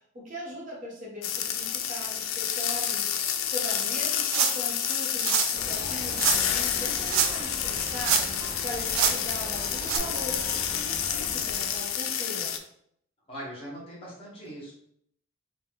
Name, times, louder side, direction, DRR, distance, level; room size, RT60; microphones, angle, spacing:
voice 1, 0.0-3.1 3.5-12.6, left 1 dB, 40° right, -3 dB, 0.8 m, -40 dB
sound 1, 1.2-12.6, left 9 dB, 80° left, 0.3 m, -29 dB
sound 2, 4.3-4.7 5.2-5.5 6.2-6.4 7.0-7.5 7.8-8.5 8.9-9.2 9.8-10.0, right 8 dB, 75° right, 0.3 m, -25 dB
sound 3, 5.5-11.9, equal, ahead, 0.6 m, -40 dB
voice 2, 13.3-14.7, equal, 25° left, -5 dB, 1.0 m, -40 dB
2.7 x 2.2 x 3.4 m, 0.69 s
head